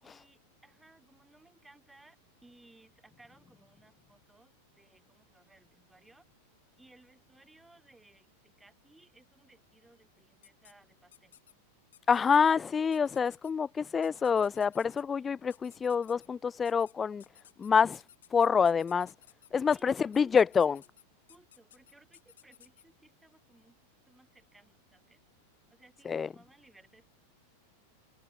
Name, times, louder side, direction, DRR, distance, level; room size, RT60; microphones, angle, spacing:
voice 1, 0.0-6.3 6.8-11.3 12.1-12.7 19.7-20.4 21.3-23.8 24.0-25.2 25.7-27.1, right 2 dB, 5° right, 3.3 m, -61 dB
sound 1, 10.4-10.7 11.1-11.5 11.9-12.5 12.9-13.5 14.0-15.0 15.5-16.3 16.6-16.9 17.2-22.8, left 10 dB, 60° left, 7.3 m, -58 dB
voice 2, 12.1-17.2 17.6-18.0 18.3-19.1 19.5-20.8 26.1-26.3, left 6 dB, 20° left, 0.3 m, -26 dB
figure-of-eight pair, 90°, 0 cm